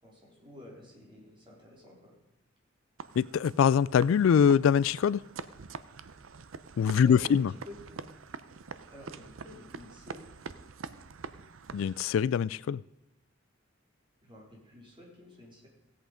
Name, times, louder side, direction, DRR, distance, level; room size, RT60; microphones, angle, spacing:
voice 1, 0.0-2.1 7.0-8.1 8.9-10.3 14.2-15.7, left 1 dB, 25° right, 3.9 m, -50 dB
sound 1, 3.0-12.3, right 5 dB, 85° right, 0.6 m, -45 dB
voice 2, 3.2-5.2 6.8-7.5 11.7-12.8, left 7 dB, 75° left, 0.3 m, -23 dB
16.5 x 8.3 x 5.1 m
head